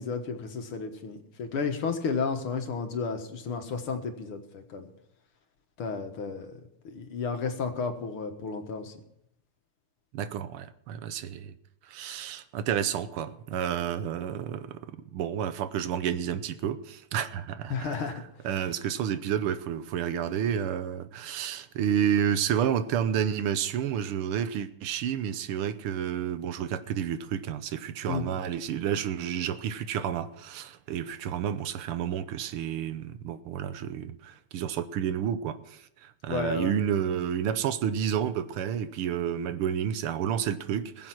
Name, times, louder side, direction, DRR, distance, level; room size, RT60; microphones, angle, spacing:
voice 1, 0.0-4.9 5.8-6.5 6.8-8.9 17.7-18.1 28.1-28.2 36.3-36.7, left 5 dB, 75° left, 6 dB, 2.3 m, -32 dB
voice 2, 10.1-11.5 11.9-14.8 15.1-18.2 18.4-41.1, right 9 dB, 85° right, 12 dB, 1.7 m, -30 dB
20.5 x 7.7 x 6.0 m, 0.76 s
omnidirectional pair, 2.4 m